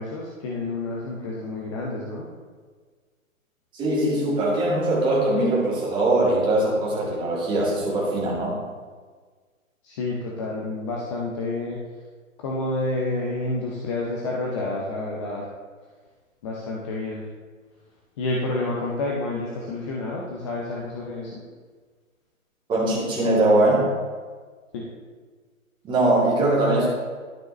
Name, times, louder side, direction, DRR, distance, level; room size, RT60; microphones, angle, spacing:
voice 1, 0.0-2.3 9.8-11.8 12.4-15.4 16.4-17.2 18.2-21.4 24.7-24.8, left 2 dB, 25° left, -3 dB, 0.7 m, -29 dB
voice 2, 3.7-8.6 22.7-23.9 25.8-26.9, right 2 dB, 10° right, -5 dB, 1.9 m, -21 dB
12.0 x 5.6 x 3.2 m, 1.5 s
figure-of-eight pair, 130°, 41 cm